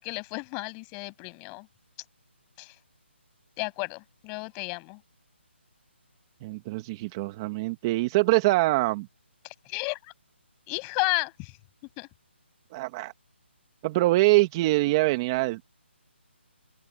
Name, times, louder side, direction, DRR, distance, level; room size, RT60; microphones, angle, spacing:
voice 1, 0.0-1.7 2.6-2.8 3.6-5.0 9.4-10.1 10.7-11.6 12.0-12.1, left 35 dB, 15° left, 7.1 m, -33 dB
voice 2, 6.4-9.1 12.7-13.1 13.8-15.7, right 20 dB, 20° right, 1.2 m, -24 dB
open air
hypercardioid pair, 165°, 7 cm